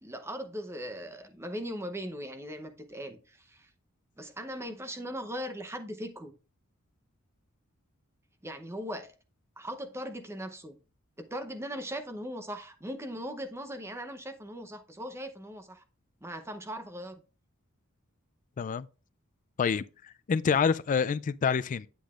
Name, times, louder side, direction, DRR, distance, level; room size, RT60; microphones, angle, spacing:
voice 1, 0.0-3.7 4.2-6.3 8.4-9.1 9.6-10.8 11.2-15.8 16.2-17.2, equal, 10° right, 0.7 m, -39 dB
voice 2, 20.3-21.9, left 6 dB, 40° left, 0.3 m, -26 dB
8.4 x 7.8 x 2.4 m
head